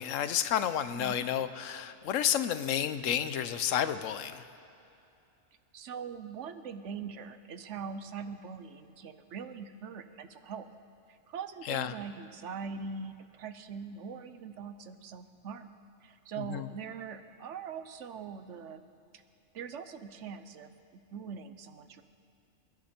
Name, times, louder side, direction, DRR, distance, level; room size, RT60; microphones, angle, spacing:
voice 1, 0.0-4.4 11.7-11.9 16.5-16.7, left 10 dB, 90° left, 12 dB, 1.1 m, -31 dB
voice 2, 0.9-1.3 5.7-10.6 11.1-15.7 16.0-18.8 19.1-19.2 19.5-22.0, right 6 dB, 70° right, 10 dB, 1.1 m, -42 dB
27.5 x 10.5 x 4.4 m, 2.7 s
omnidirectional pair, 1.3 m